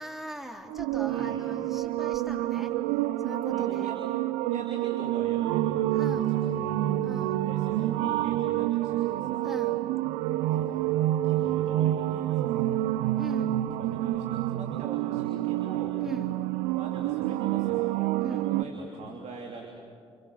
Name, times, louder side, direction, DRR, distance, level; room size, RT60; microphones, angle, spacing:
voice 1, 0.0-2.7 3.2-3.9 5.9-6.5 7.0-7.5 9.4-10.0 13.2-13.7 16.0-16.4 18.2-18.6, right 1 dB, ahead, 2 dB, 3.9 m, -41 dB
sound 1, 0.7-18.6, right 14 dB, 75° right, 0.7 m, -28 dB
voice 2, 1.1-1.4 3.5-4.0 4.5-6.8 7.4-9.5 10.5-13.0 13.8-16.0 16.7-17.9 18.3-19.7, right 4 dB, 55° right, 1 dB, 3.3 m, -43 dB
28.5 x 28.5 x 7.0 m, 2.3 s
hypercardioid pair, 45°, 13 cm